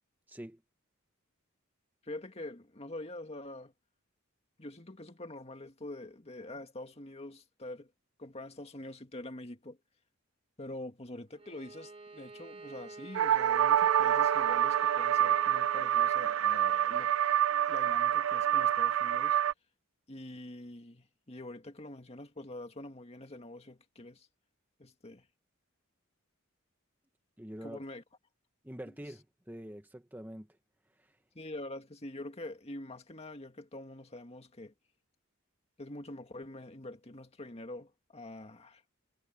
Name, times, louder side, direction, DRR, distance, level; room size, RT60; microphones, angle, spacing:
voice 1, 0.3-0.6 27.4-27.8 28.6-30.6 30.9-31.2, equal, 10° right, 1.1 m, -45 dB
voice 2, 2.0-3.7 4.6-7.9 8.2-9.8 10.6-17.2 17.7-19.4 20.1-24.3 24.8-25.3 27.6-28.0 31.3-34.7 35.8-38.8, left 1 dB, 30° left, 2.1 m, -45 dB
Bowed string instrument, 11.3-16.3, right 3 dB, 25° right, 1.4 m, -49 dB
sound 1, 13.1-19.5, right 10 dB, 70° right, 0.4 m, -27 dB
head